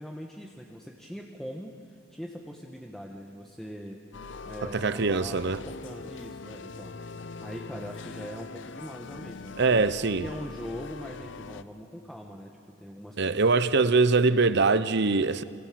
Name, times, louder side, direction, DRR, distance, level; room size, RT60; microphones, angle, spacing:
voice 1, 0.0-4.0 4.4-7.0 7.4-13.5, equal, ahead, 1.5 m, -42 dB
sound 1, 4.1-11.6, left 4 dB, 65° left, 0.7 m, -42 dB
voice 2, 4.7-5.6 9.6-10.2 13.2-15.4, right 3 dB, 60° right, 0.9 m, -23 dB
28.0 x 27.5 x 7.7 m
head